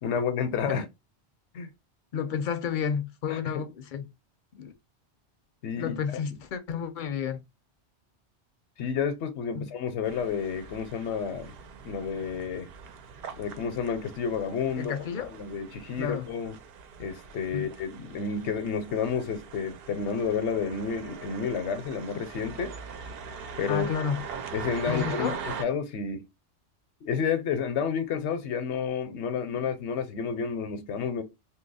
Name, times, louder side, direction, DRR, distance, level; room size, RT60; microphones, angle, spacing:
voice 1, 0.0-0.8 1.5-1.7 3.3-3.6 5.6-6.0 8.8-11.5 11.8-12.7 13.4-14.9 15.3-16.5 17.0-22.7 23.6-23.9 24.5-26.2 27.0-31.2, left 6 dB, 85° left, 1.0 m, -30 dB
voice 2, 2.1-4.1 4.5-4.7 5.8-7.4 9.5-9.7 14.8-15.3 16.0-16.3 17.5-17.7 23.7-24.2 24.9-25.4, left 7 dB, 55° left, 0.6 m, -31 dB
sound 1, 10.0-25.6, right 6 dB, 65° right, 0.7 m, -42 dB
2.8 x 2.3 x 3.9 m
omnidirectional pair, 1.1 m